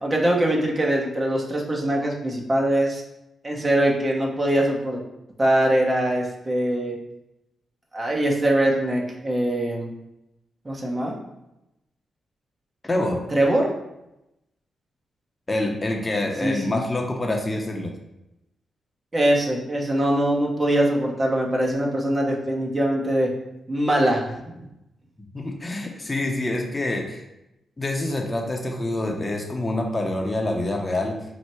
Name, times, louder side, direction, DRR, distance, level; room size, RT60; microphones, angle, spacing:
voice 1, 0.0-3.0 3.4-5.0 5.4-7.0 7.9-9.9 10.6-11.2 13.3-13.7 16.4-16.8 19.1-23.3 23.7-24.7, right 1 dB, 30° right, -1 dB, 1.0 m, -22 dB
voice 2, 12.8-13.2 15.5-17.9 25.3-27.2 27.8-31.2, left 1 dB, 25° left, 1 dB, 0.7 m, -26 dB
4.5 x 2.2 x 4.4 m, 0.90 s
supercardioid pair, 55°, 0 cm